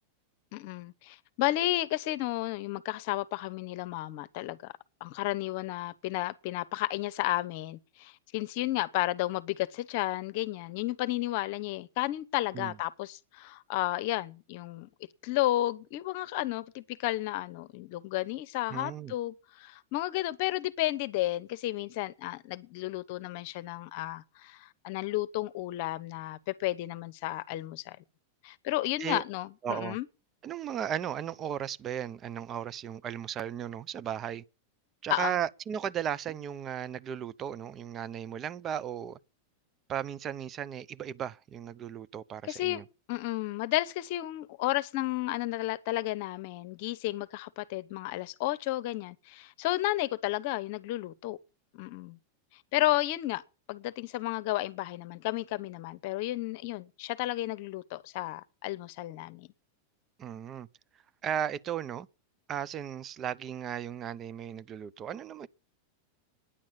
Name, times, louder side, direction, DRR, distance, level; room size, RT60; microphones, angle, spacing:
voice 1, 0.5-4.7 5.0-14.9 15.2-28.0 28.4-30.0 35.1-35.4 42.5-42.8 43.1-51.4 51.7-52.2 52.7-53.4 53.7-59.5, left 16 dB, 50° left, 0.8 m, -32 dB
voice 2, 18.7-19.1 29.0-29.2 29.6-30.0 30.4-34.4 35.0-39.2 39.9-42.8 60.2-60.7 61.2-62.1 62.5-65.5, right 9 dB, 30° right, 0.5 m, -35 dB
10.0 x 8.6 x 7.3 m
figure-of-eight pair, 90°, 0 cm